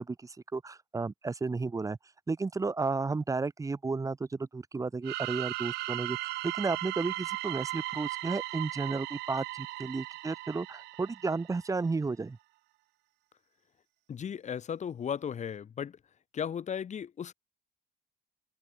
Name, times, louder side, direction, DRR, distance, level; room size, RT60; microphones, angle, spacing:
voice 1, 0.0-2.0 2.3-12.4, right 4 dB, 20° right, 1.6 m, -33 dB
sound 1, 5.0-11.7, right 19 dB, 85° right, 1.3 m, -37 dB
voice 2, 14.1-16.0 16.3-17.3, left 8 dB, 45° left, 4.3 m, -35 dB
cardioid pair, 110°, 17 cm